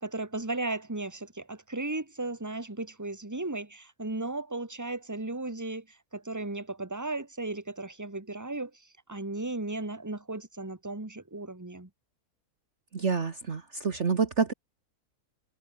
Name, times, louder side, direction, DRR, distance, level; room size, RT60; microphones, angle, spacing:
voice 1, 0.0-11.9, right 2 dB, 10° right, 2.2 m, -36 dB
voice 2, 12.9-14.5, right 5 dB, 50° right, 1.8 m, -28 dB
omnidirectional pair, 1.7 m